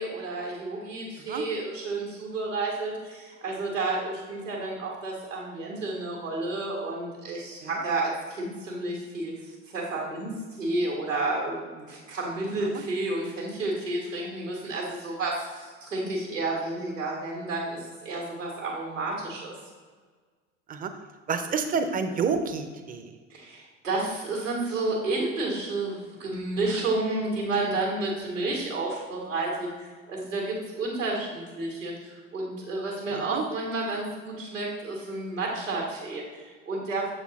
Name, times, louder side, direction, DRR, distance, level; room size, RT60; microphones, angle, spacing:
voice 1, 0.0-19.5 23.3-37.1, right 2 dB, 85° right, -2 dB, 1.8 m, -31 dB
voice 2, 21.3-23.1 33.1-33.4, right 5 dB, 25° right, 8 dB, 0.6 m, -29 dB
6.9 x 4.2 x 4.0 m, 1.5 s
figure-of-eight pair, 65°, 37 cm